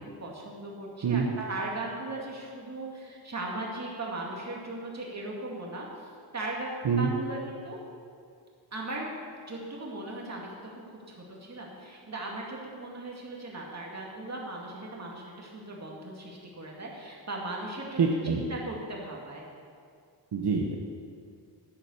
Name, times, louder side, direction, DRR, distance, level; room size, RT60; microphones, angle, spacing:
voice 1, 0.0-7.8 8.7-9.1 9.5-19.5, right 2 dB, 35° right, -2 dB, 2.2 m, -38 dB
voice 2, 18.0-18.4 20.3-20.8, right 5 dB, 60° right, 0 dB, 1.1 m, -26 dB
9.9 x 8.8 x 7.1 m, 2.3 s
wide cardioid pair, 160°, 44 cm